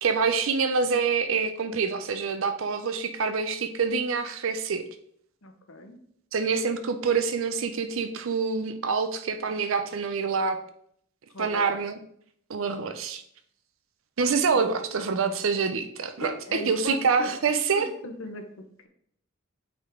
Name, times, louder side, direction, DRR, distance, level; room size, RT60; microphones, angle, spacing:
voice 1, 0.0-4.8 6.3-10.6 11.4-12.0 12.5-13.2 14.2-17.9, right 5 dB, 70° right, 9 dB, 0.5 m, -26 dB
voice 2, 5.4-6.0 11.3-11.7 14.5-14.6 16.2-17.3 17.7-18.4, left 2 dB, 75° left, 6 dB, 0.9 m, -37 dB
8.4 x 3.6 x 3.7 m, 0.67 s
head